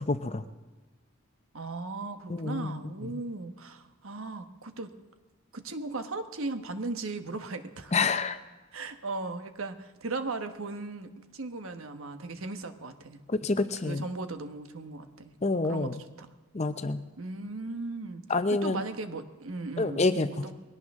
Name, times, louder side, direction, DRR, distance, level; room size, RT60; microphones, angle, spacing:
voice 1, 0.1-0.4 2.3-3.2 7.9-8.4 13.3-14.1 15.4-16.0 16.5-17.0 18.3-18.8 19.8-20.4, left 3 dB, 30° left, 11 dB, 0.6 m, -28 dB
voice 2, 1.5-4.9 5.5-7.9 8.7-13.2 13.8-15.4 15.6-16.3 17.2-18.2 18.5-20.0 20.4-20.5, right 3 dB, 70° right, 8 dB, 1.3 m, -37 dB
21.5 x 17.5 x 3.7 m, 1.3 s
head